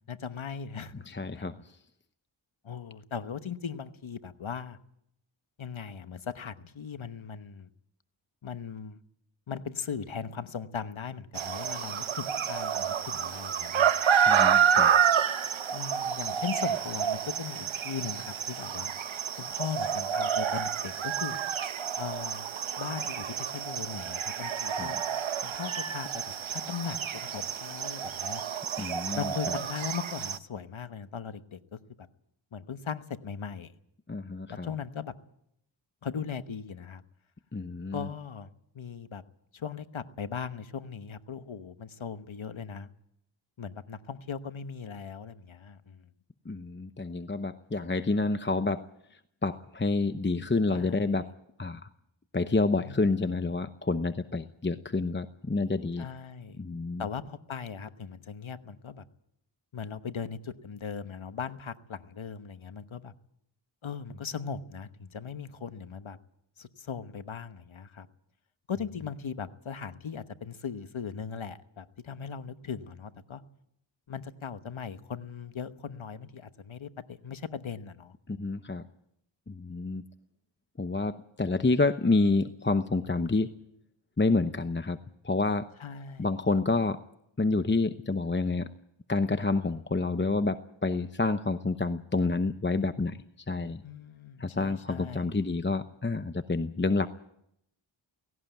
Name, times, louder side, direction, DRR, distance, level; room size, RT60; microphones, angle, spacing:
voice 1, 0.1-1.6 2.6-4.8 5.6-7.7 8.4-9.0 9.5-13.9 15.7-18.9 19.4-21.4 22.0-22.5 22.8-25.0 25.4-28.4 29.1-32.1 32.5-33.7 34.5-35.1 36.0-37.0 37.9-38.5 38.7-39.2 39.5-42.9 43.6-46.1 50.7-51.1 52.8-53.0 56.0-56.6 57.0-59.0 59.7-63.1 63.8-66.2 66.6-68.1 68.7-73.4 74.1-78.1 85.8-86.3 93.8-95.3, left 6 dB, 80° left, 11 dB, 1.2 m, -38 dB
voice 2, 0.9-1.8 14.3-14.9 24.7-25.0 28.8-29.3 34.1-34.7 37.5-38.1 46.5-48.9 49.4-51.3 51.6-51.8 52.3-56.1 56.6-57.0 78.3-78.8 79.5-80.0 80.8-83.5 84.2-85.0 85.2-85.7 86.2-87.0 87.4-88.7 89.1-93.2 93.5-93.8 94.4-97.1, left 3 dB, 25° left, 10 dB, 0.8 m, -28 dB
sound 1, 11.4-30.4, right 8 dB, 75° right, 0.9 m, -29 dB
18.0 x 17.5 x 9.1 m, 0.76 s
wide cardioid pair, 50°, 47 cm